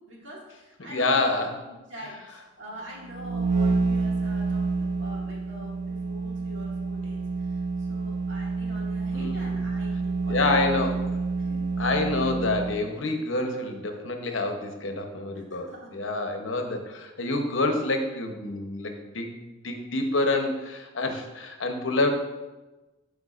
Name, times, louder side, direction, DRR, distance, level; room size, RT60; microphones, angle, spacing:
voice 1, 0.1-1.4 1.6-10.8 11.4-11.7 15.5-15.9, equal, 70° right, -4 dB, 2.0 m, -44 dB
voice 2, 0.8-1.6 9.1-9.6 10.3-11.0 11.8-22.1, left 2 dB, 80° left, 4 dB, 0.9 m, -27 dB
sound 1, 3.0-12.9, right 3 dB, 40° right, 0.7 m, -28 dB
10.5 x 4.8 x 2.5 m, 1.1 s
head